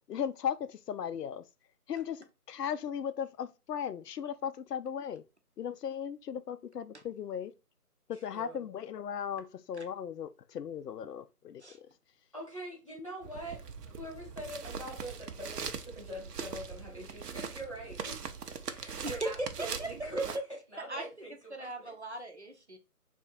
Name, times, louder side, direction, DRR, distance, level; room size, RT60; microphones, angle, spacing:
voice 1, 0.1-1.5 1.9-5.2 5.6-7.5 8.1-11.6, left 8 dB, 90° left, 0.6 m, -37 dB
voice 2, 8.1-8.7 12.3-13.6 13.9-20.4 20.7-21.9, right 1 dB, 20° left, 1.1 m, -44 dB
sound 1, 13.2-20.4, right 6 dB, 85° right, 0.7 m, -41 dB
voice 3, 19.0-19.5 19.8-19.9 20.9-21.1 21.5-22.8, right 1 dB, 50° right, 0.6 m, -38 dB
3.5 x 2.5 x 4.1 m
figure-of-eight pair, 175°, 46 cm